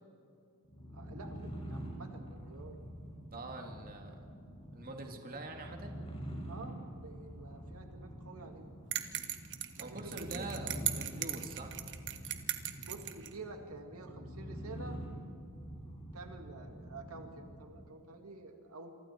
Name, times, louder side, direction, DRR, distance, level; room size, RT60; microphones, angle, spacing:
sound 1, 0.6-17.9, equal, 25° left, 6.5 m, -46 dB
voice 1, 0.9-2.8 6.5-8.7 9.8-10.5 12.8-15.0 16.1-18.9, right 3 dB, 85° right, 4 dB, 2.3 m, -49 dB
voice 2, 3.3-4.2 4.7-6.0 9.8-11.7, right 2 dB, 45° right, 2 dB, 2.5 m, -44 dB
sound 2, 8.9-13.3, right 12 dB, 60° right, 1.5 m, -38 dB
28.0 x 24.5 x 4.6 m, 2.5 s
head